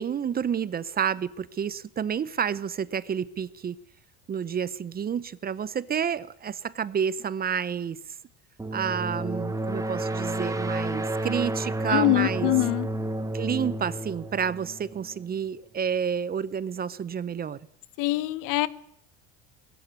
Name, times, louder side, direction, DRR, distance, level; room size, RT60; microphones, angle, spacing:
voice 1, 0.0-3.8 4.3-8.0 8.7-12.5 13.3-17.6, right 7 dB, 25° right, 0.8 m, -29 dB
sound 1, 8.6-15.3, right 1 dB, 10° right, 1.7 m, -31 dB
voice 2, 11.9-12.9 18.0-18.7, left 18 dB, 65° left, 1.3 m, -24 dB
19.0 x 15.5 x 9.5 m
supercardioid pair, 115°, 35 cm